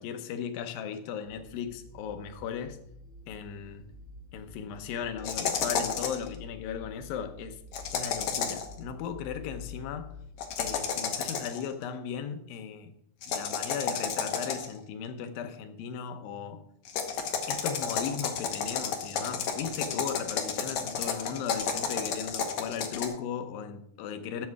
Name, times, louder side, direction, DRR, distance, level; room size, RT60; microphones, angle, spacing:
voice 1, 0.0-2.8 3.3-3.9 4.3-7.6 7.9-10.2 10.6-12.9 13.2-16.6 17.5-24.5, left 7 dB, 80° left, 2.7 m, -37 dB
sound 1, 1.2-10.8, left 5 dB, 5° right, 2.9 m, -48 dB
sound 2, 5.2-6.3 7.7-8.7 10.4-11.7 13.2-14.8 16.9-23.1, left 6 dB, 60° left, 2.1 m, -31 dB
11.0 x 7.8 x 4.7 m
omnidirectional pair, 4.1 m